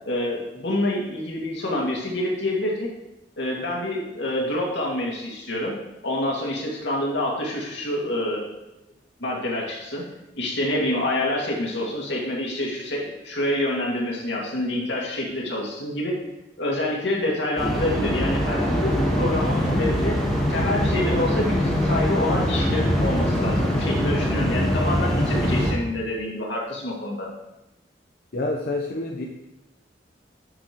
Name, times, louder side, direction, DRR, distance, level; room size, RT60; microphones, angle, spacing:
voice 1, 0.1-2.9 3.4-5.7 6.0-8.5 9.2-10.1 10.4-16.2 16.6-20.2 20.5-27.3, left 1 dB, 85° left, -2 dB, 2.1 m, -27 dB
sound 1, 17.6-25.7, equal, 5° left, 1.9 m, -23 dB
voice 2, 28.3-29.3, left 2 dB, 60° left, 0 dB, 0.8 m, -27 dB
9.8 x 6.9 x 3.0 m, 0.97 s
head